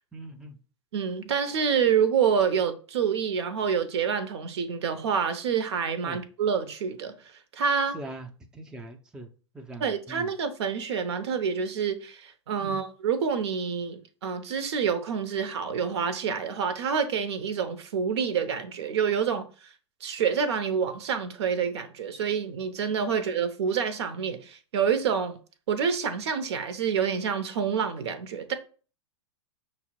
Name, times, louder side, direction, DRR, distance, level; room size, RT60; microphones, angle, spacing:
voice 1, 0.1-0.6 6.0-6.2 7.9-9.3 9.5-10.3 12.6-12.8, right 2 dB, 5° right, 0.5 m, -41 dB
voice 2, 0.9-7.1 7.5-8.0 9.8-19.5 20.0-25.4 25.7-28.5, right 7 dB, 60° right, 0.7 m, -27 dB
5.6 x 2.0 x 4.3 m
hypercardioid pair, 105°, 15 cm